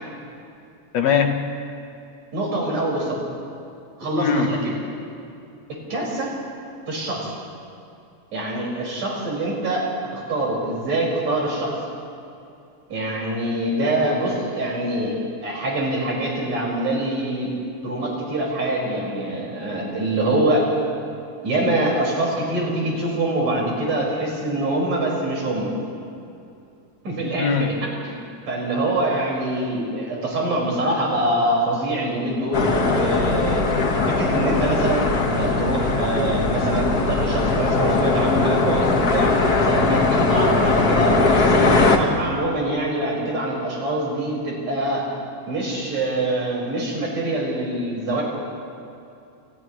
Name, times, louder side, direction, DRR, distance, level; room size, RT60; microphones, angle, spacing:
voice 1, 0.9-1.5 4.2-4.5 27.4-27.7, left 6 dB, 65° left, 5 dB, 2.1 m, -20 dB
voice 2, 2.3-3.2 4.0-4.7 5.9-6.3 6.9-7.3 8.3-11.8 12.9-15.2 15.4-17.5 17.8-20.7 21.4-25.7 27.0-27.7 28.0-33.7 34.1-39.4 39.6-45.1 45.5-48.2, right 1 dB, 65° right, -3 dB, 6.7 m, -24 dB
sound 1, 32.5-42.0, left 3 dB, 40° left, 1.6 m, -20 dB
30.0 x 29.5 x 3.2 m, 2.6 s
omnidirectional pair, 3.4 m